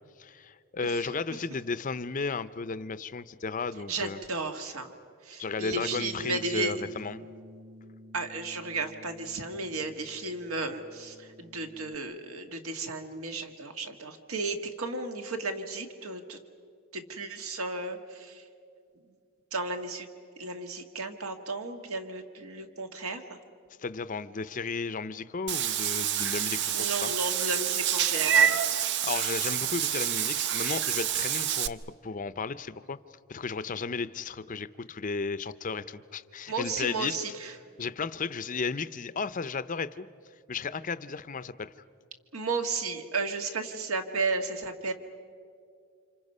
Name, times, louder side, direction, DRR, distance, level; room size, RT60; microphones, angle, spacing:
voice 1, 0.2-4.2 5.4-7.2 23.8-27.1 29.0-33.0 33.3-37.2 37.8-40.1 40.5-41.7, left 4 dB, 35° left, 14 dB, 0.6 m, -34 dB
voice 2, 3.9-4.9 5.2-6.9 8.1-16.4 16.9-18.5 19.1-19.2 19.5-20.1 20.4-23.4 26.7-28.6 36.5-37.6 42.3-44.9, right 3 dB, 75° right, 6 dB, 1.7 m, -34 dB
Bass guitar, 5.7-12.0, right 1 dB, 5° right, 0.6 m, -49 dB
Meow / Water / Bathtub (filling or washing), 25.5-31.7, right 9 dB, 50° right, 0.5 m, -27 dB
29.5 x 26.5 x 5.5 m, 2.3 s
head